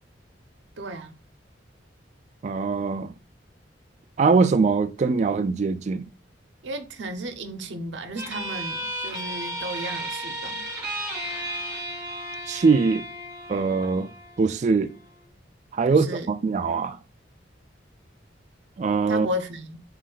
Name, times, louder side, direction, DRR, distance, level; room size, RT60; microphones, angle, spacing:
voice 1, 0.8-1.2 6.6-10.7 15.9-16.3 19.1-19.8, equal, 80° right, 0.7 m, -34 dB
voice 2, 2.4-3.1 4.2-6.1 12.5-13.0 13.5-14.1 14.4-14.9 15.7-17.0 18.8-19.3, right 4 dB, 40° right, 0.3 m, -22 dB
sound 1, 8.2-15.2, right 1 dB, 5° right, 2.1 m, -34 dB
4.2 x 3.1 x 3.8 m
head